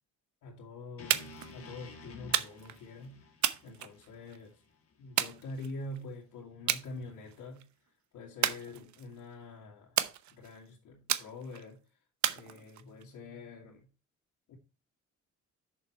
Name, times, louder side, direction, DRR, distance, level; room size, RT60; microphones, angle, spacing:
voice 1, 0.4-3.2 3.6-4.6 5.0-7.7 8.1-10.0 10.3-11.8 12.3-13.9 14.5-14.6, left 2 dB, 80° left, 2.2 m, -45 dB
sound 1, 1.0-5.1, left 3 dB, 50° left, 2.4 m, -52 dB
sound 2, 1.1-1.5 2.3-2.8 3.4-4.4 5.2-6.0 6.7-6.9 7.3-7.6 8.4-9.2 10.0-10.6 11.1-11.6 12.2-13.0, right 11 dB, 70° right, 0.9 m, -32 dB
7.4 x 6.7 x 4.5 m
cardioid pair, 90°, 30 cm